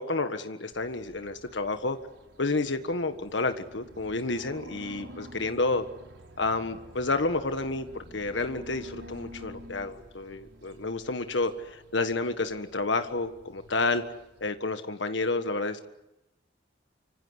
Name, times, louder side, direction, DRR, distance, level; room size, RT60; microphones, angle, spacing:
voice 1, 0.0-2.0 2.4-5.8 6.4-14.0 14.4-15.9, left 3 dB, 80° left, 9 dB, 1.5 m, -30 dB
sound 1, 0.7-14.5, equal, 80° right, 5.1 m, -49 dB
26.0 x 25.5 x 8.2 m, 0.88 s
head